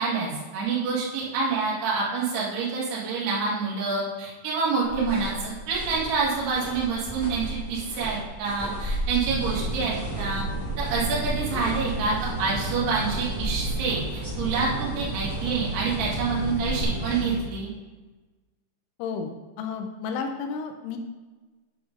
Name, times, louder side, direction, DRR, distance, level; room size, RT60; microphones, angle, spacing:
voice 1, 0.0-10.4 10.8-17.7, right 4 dB, 65° right, -5 dB, 3.8 m, -27 dB
sound 1, 4.8-16.8, right 1 dB, 10° left, 1.0 m, -36 dB
sound 2, 9.2-17.3, right 2 dB, 45° left, 1.5 m, -32 dB
voice 2, 19.0-19.3 19.6-21.0, left 5 dB, 80° left, 5 dB, 3.2 m, -32 dB
8.7 x 5.0 x 5.2 m, 1.3 s
omnidirectional pair, 5.5 m